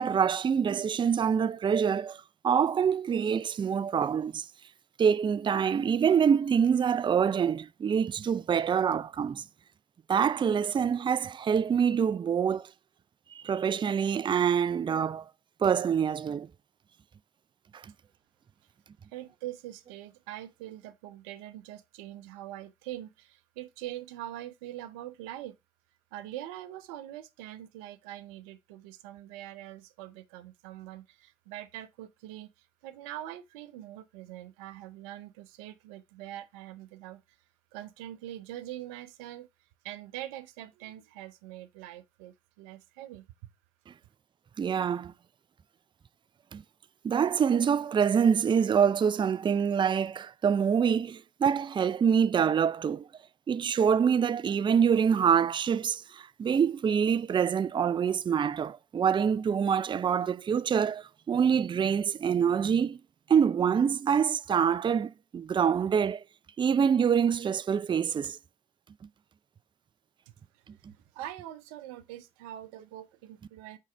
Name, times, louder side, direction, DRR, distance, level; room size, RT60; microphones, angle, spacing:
voice 1, 0.0-2.2 2.4-4.5 5.0-9.4 10.1-12.7 13.3-15.3 15.6-16.5 17.7-17.8 44.6-45.1 46.5-46.6 47.0-53.1 53.5-63.0 63.3-66.2 66.6-68.4, right 7 dB, 30° right, 0.4 m, -25 dB
voice 2, 19.1-25.6 26.1-37.2 37.7-39.5 39.8-43.2 70.5-70.6 71.1-73.8, right 13 dB, 85° right, 0.6 m, -43 dB
8.3 x 3.8 x 4.3 m
hypercardioid pair, 55°, 17 cm